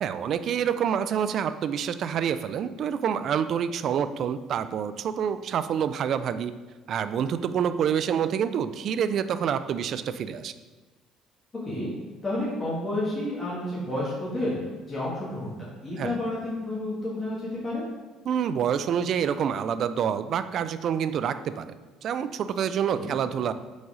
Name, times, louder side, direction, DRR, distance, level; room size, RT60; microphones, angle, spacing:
voice 1, 0.0-6.5 6.9-10.5 16.0-16.2 18.3-21.7 22.0-23.5, right 8 dB, 55° right, 12 dB, 0.3 m, -27 dB
voice 2, 12.2-14.6 14.8-17.8 22.9-23.1, left 1 dB, 25° left, -7 dB, 1.6 m, -30 dB
4.8 x 4.0 x 4.9 m, 1.3 s
cardioid pair, 105°, 0 cm